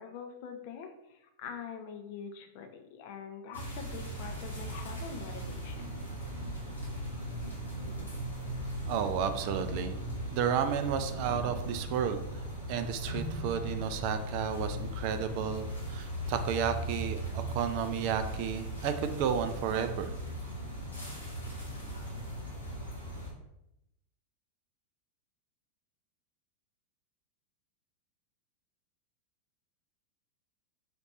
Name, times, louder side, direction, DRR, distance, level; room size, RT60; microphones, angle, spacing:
voice 1, 0.0-6.0, left 6 dB, 45° left, 6 dB, 0.5 m, -44 dB
sound 1, 3.5-23.3, equal, 85° left, 1.1 m, -38 dB
voice 2, 8.9-10.0 10.3-12.2 12.7-20.1, right 8 dB, 45° right, 9 dB, 0.3 m, -32 dB
4.2 x 2.5 x 3.3 m, 0.85 s
figure-of-eight pair, 90°, 0 cm